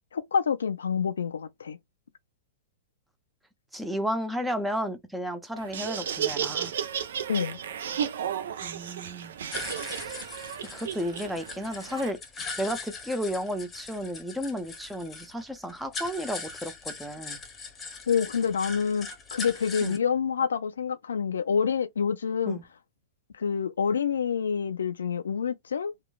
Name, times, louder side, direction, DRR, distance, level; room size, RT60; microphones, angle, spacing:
voice 1, 0.1-1.8 7.3-7.6 18.1-22.6 23.3-25.9, left 6 dB, 75° left, 0.3 m, -27 dB
voice 2, 3.7-6.7 8.6-9.4 9.9-10.2 10.7-12.2 12.6-17.4 19.8-20.0 22.5-22.6, equal, 5° right, 0.5 m, -33 dB
Laughter, 5.6-12.1, right 8 dB, 65° right, 0.4 m, -33 dB
sound 1, 9.5-20.0, left 4 dB, 20° left, 0.9 m, -40 dB
3.0 x 2.2 x 2.3 m
figure-of-eight pair, 105°, 0 cm